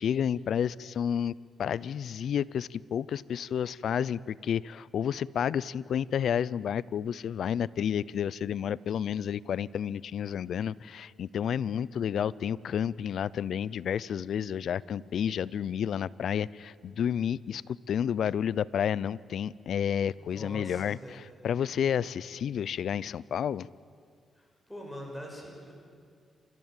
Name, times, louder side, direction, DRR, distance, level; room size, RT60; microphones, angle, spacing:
voice 1, 0.0-1.3 1.6-17.6 17.9-23.7, left 8 dB, 70° left, 21 dB, 0.5 m, -30 dB
voice 2, 20.2-21.2 24.4-25.7, equal, ahead, -1 dB, 6.1 m, -43 dB
28.5 x 14.0 x 9.0 m, 2.2 s
cardioid pair, 80°, 0 cm